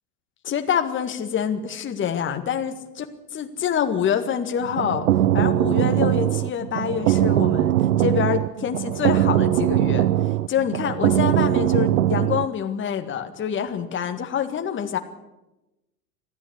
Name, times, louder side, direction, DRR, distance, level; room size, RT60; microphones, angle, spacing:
voice 1, 0.4-2.7 3.3-5.1 5.3-10.1 10.5-15.0, left 8 dB, 25° left, 7 dB, 1.9 m, -26 dB
sound 1, 4.6-12.5, right 13 dB, 60° right, 0.7 m, -21 dB
19.5 x 14.0 x 9.7 m, 1.0 s
figure-of-eight pair, 80°, 47 cm